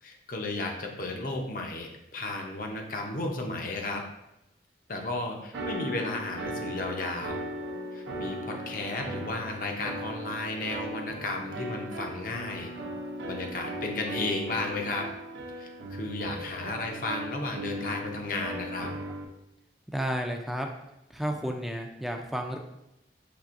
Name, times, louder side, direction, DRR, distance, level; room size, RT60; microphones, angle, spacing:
voice 1, 0.0-4.0 4.9-7.5 7.9-12.7 13.2-15.1 15.6-18.9, left 2 dB, 50° left, 2 dB, 0.6 m, -34 dB
sound 1, 5.5-19.2, right 1 dB, 85° right, 0.5 m, -38 dB
voice 2, 19.9-20.7 21.1-22.6, equal, ahead, 3 dB, 0.3 m, -31 dB
5.9 x 3.2 x 2.5 m, 0.88 s
head